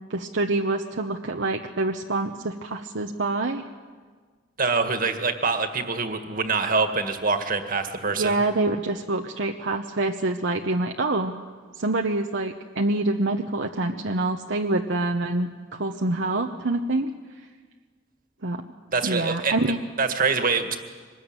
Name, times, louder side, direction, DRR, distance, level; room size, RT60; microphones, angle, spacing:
voice 1, 0.1-3.6 8.2-11.3 11.8-17.1 18.4-18.6 19.0-19.8, right 2 dB, 70° right, 2 dB, 1.0 m, -26 dB
voice 2, 4.6-8.4 18.9-19.5 20.0-20.8, right 4 dB, 50° right, 7 dB, 2.0 m, -25 dB
24.5 x 20.5 x 9.1 m, 1.5 s
head